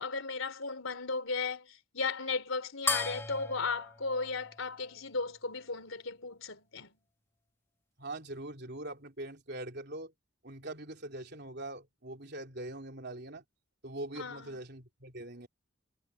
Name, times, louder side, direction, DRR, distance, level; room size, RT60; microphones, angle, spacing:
voice 1, 0.0-6.9 14.1-14.6, left 4 dB, 75° left, 3.3 m, -35 dB
sound 1, 2.9-5.7, left 3 dB, 10° left, 1.7 m, -37 dB
voice 2, 8.0-10.1 10.4-13.4 13.8-15.5, right 1 dB, 50° right, 3.5 m, -42 dB
head